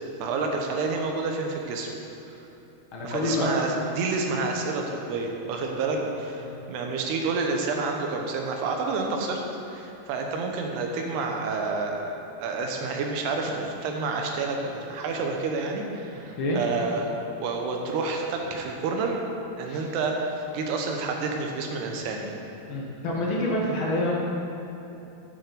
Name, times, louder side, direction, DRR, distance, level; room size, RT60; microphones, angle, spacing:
voice 1, 0.2-1.9 3.0-9.4 9.7-12.1 12.4-17.1 17.4-19.2 19.6-22.4, right 3 dB, 80° right, 2 dB, 3.1 m, -29 dB
voice 2, 2.9-3.5 5.9-6.0 6.4-6.6 16.3-16.6 19.7-19.8 22.7-24.1, left 1 dB, 75° left, -4 dB, 1.1 m, -27 dB
9.5 x 7.6 x 6.9 m, 3.0 s
omnidirectional pair, 4.7 m